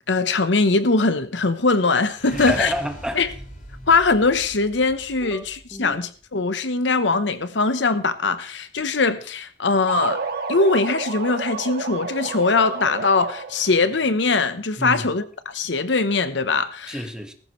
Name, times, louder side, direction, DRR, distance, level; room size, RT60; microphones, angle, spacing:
voice 1, 0.1-2.7 3.1-3.3 3.9-10.2 10.5-17.0, left 3 dB, 70° left, 0.9 m, -21 dB
sound 1, 2.1-6.1, left 1 dB, 50° left, 5.4 m, -40 dB
voice 2, 2.3-3.3 5.2-6.0 14.8-15.1 16.9-17.3, equal, 5° right, 1.5 m, -30 dB
sound 2, 9.9-13.8, right 4 dB, 55° right, 2.0 m, -30 dB
18.5 x 15.0 x 3.2 m
head